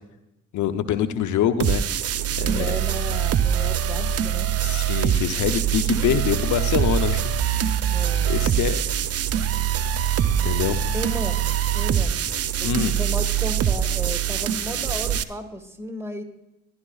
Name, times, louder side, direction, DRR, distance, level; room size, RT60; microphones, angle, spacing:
voice 1, 0.5-1.8 2.4-2.8 4.6-7.2 7.5-7.6 8.3-8.8 10.4-10.8 12.6-12.9, left 10 dB, 75° left, 11 dB, 0.7 m, -25 dB
sound 1, 1.6-15.2, right 9 dB, 55° right, 0.6 m, -23 dB
voice 2, 2.4-4.5 7.9-8.8 10.9-11.5 11.7-12.2 12.6-16.2, equal, 10° right, 5 dB, 1.6 m, -34 dB
12.0 x 11.0 x 2.3 m, 0.89 s
supercardioid pair, 50°, 30 cm